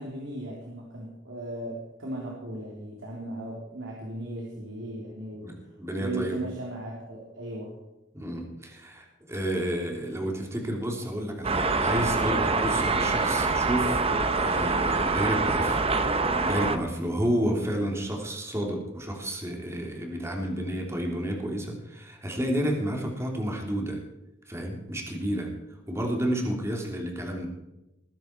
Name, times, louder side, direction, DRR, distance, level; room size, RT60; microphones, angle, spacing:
voice 1, 0.0-5.7 6.0-7.8, right 1 dB, 85° right, -2 dB, 3.4 m, -37 dB
voice 2, 5.4-6.4 8.1-14.0 14.3-15.8 16.4-24.0 24.5-25.5 25.9-27.5, equal, 15° right, 1 dB, 3.2 m, -30 dB
sound 1, 11.4-16.8, right 3 dB, 30° right, 1.1 m, -25 dB
20.5 x 10.5 x 4.6 m, 0.94 s
head